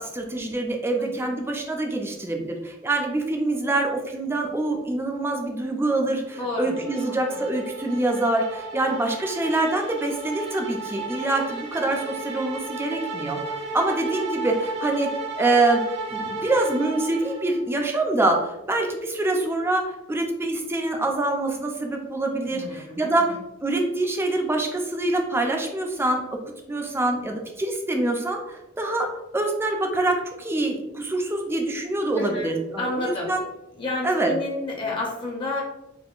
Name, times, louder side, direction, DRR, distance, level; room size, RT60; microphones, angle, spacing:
voice 1, 0.0-13.4 13.7-15.1 15.4-15.8 16.1-23.2 23.6-26.2 26.7-29.1 29.3-33.4 34.0-34.3, right 2 dB, 10° right, 2 dB, 0.4 m, -25 dB
voice 2, 1.0-1.3 6.4-7.4 22.5-23.4 32.2-33.3 33.8-35.6, left 2 dB, 25° left, -2 dB, 0.6 m, -31 dB
sound 1, 6.3-17.7, right 4 dB, 60° right, 0.7 m, -34 dB
3.6 x 2.5 x 2.4 m, 0.95 s
head